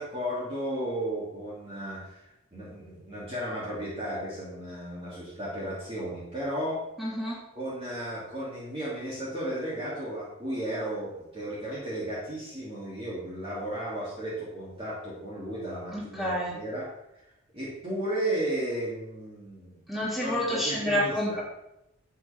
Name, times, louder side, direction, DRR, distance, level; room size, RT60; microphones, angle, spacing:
voice 1, 0.0-6.8 7.5-16.9 17.5-19.8 20.2-21.4, right 1 dB, 25° right, -8 dB, 2.9 m, -34 dB
voice 2, 7.0-7.4 15.9-16.5 19.9-21.4, equal, ahead, -8 dB, 3.7 m, -29 dB
11.5 x 8.2 x 3.6 m, 0.86 s
head